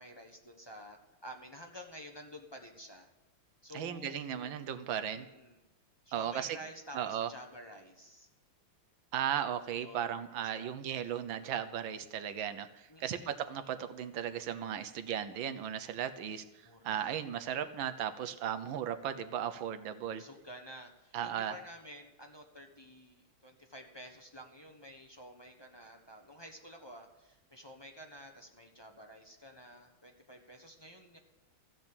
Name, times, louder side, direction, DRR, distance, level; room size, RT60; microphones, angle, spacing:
voice 1, 0.0-3.1 3.6-4.6 5.1-5.7 6.0-8.3 9.8-10.7 12.9-13.8 16.6-17.2 20.2-31.2, equal, 20° left, 2 dB, 0.6 m, -51 dB
voice 2, 3.7-5.2 6.1-6.6 6.9-7.3 9.1-16.4 16.8-20.2 21.1-21.5, right 9 dB, 70° right, 10 dB, 1.5 m, -36 dB
15.0 x 6.4 x 8.7 m, 0.98 s
omnidirectional pair, 2.4 m